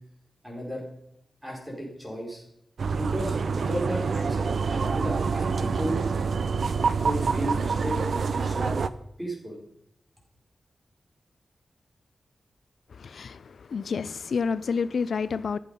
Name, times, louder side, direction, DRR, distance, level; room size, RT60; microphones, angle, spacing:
voice 1, 0.4-0.8 1.4-2.4 3.0-6.0 7.0-8.8 9.2-9.6, right 1 dB, 10° right, -1 dB, 4.5 m, -34 dB
sound 1, 2.8-8.9, right 5 dB, 65° right, 0.6 m, -26 dB
voice 2, 12.9-15.6, left 5 dB, 70° left, 15 dB, 0.4 m, -29 dB
14.5 x 10.0 x 5.3 m, 0.78 s
wide cardioid pair, 170°, 0 cm